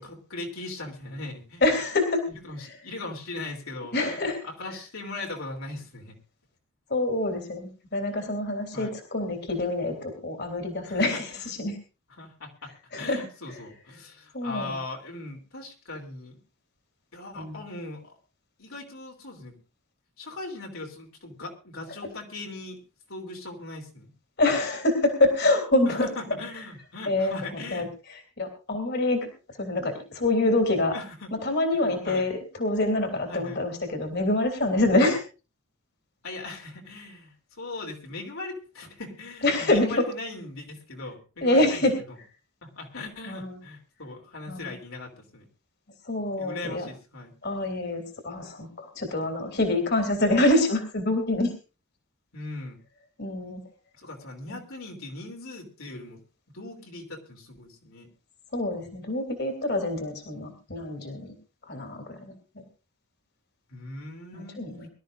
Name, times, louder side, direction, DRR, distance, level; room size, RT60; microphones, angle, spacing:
voice 1, 0.0-1.6 2.3-6.2 8.7-8.9 10.8-11.5 12.2-16.4 17.1-18.2 18.6-19.5 20.2-22.8 23.1-24.1 25.8-27.9 30.9-31.3 31.7-32.3 33.3-33.6 36.2-41.8 42.6-45.4 46.4-47.3 52.3-52.8 53.9-56.2 56.5-58.1 63.7-64.6, left 2 dB, 70° left, 0 dB, 3.2 m, -39 dB
voice 2, 1.6-2.2 2.6-2.8 3.9-4.4 6.9-11.8 12.9-13.3 14.3-14.7 17.3-17.6 24.4-26.1 27.1-29.3 29.6-30.9 31.3-35.2 39.4-40.0 41.4-42.0 43.3-43.6 44.5-44.7 46.0-46.9 47.4-51.5 53.2-53.6 54.5-54.6 58.5-61.3 61.7-62.6 64.3-64.9, left 2 dB, 50° left, 4 dB, 3.0 m, -26 dB
23.5 x 13.0 x 2.6 m, 0.32 s
head